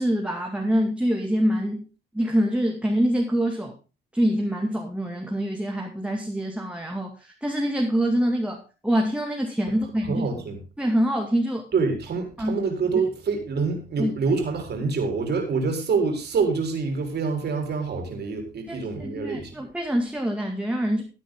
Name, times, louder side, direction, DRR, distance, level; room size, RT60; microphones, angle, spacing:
voice 1, 0.0-1.9 2.1-3.7 4.1-10.3 10.8-11.7 12.4-12.6 14.0-14.1 18.7-21.0, equal, 5° right, 1 dB, 2.3 m, -25 dB
voice 2, 10.0-10.6 11.7-19.5, right 4 dB, 55° right, 3 dB, 4.3 m, -26 dB
15.0 x 9.1 x 3.8 m, 0.32 s
cardioid pair, 90°, 20 cm